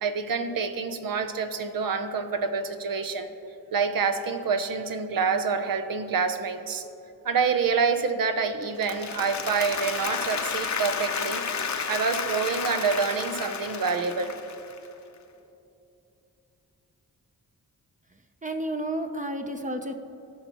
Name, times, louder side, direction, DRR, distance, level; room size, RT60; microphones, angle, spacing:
voice 1, 0.0-3.3 3.7-6.8 7.2-11.5 11.9-14.4, right 5 dB, 70° right, 8 dB, 0.8 m, -27 dB
Applause, 8.6-14.9, left 6 dB, 50° left, 0.8 m, -32 dB
voice 2, 18.4-20.0, right 1 dB, 20° right, 5 dB, 0.7 m, -31 dB
16.5 x 5.6 x 3.0 m, 2.8 s
cardioid pair, 45°, 36 cm